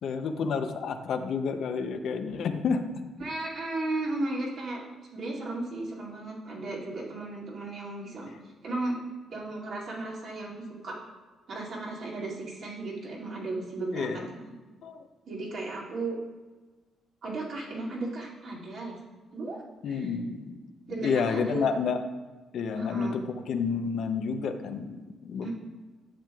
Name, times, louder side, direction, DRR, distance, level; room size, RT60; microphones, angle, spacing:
voice 1, 0.0-2.8 8.3-8.4 13.9-14.3 14.8-15.1 19.8-20.6 21.0-22.0 22.5-25.5, left 5 dB, 70° left, 7 dB, 0.6 m, -30 dB
voice 2, 3.2-4.8 5.1-8.3 8.6-9.0 9.3-11.0 11.5-14.5 15.2-16.2 17.2-18.9 19.3-20.1 20.9-21.6 22.7-23.2 25.4-25.5, right 2 dB, 60° right, -5 dB, 2.3 m, -35 dB
10.0 x 7.4 x 2.3 m, 1.3 s
cardioid pair, 90°, 0 cm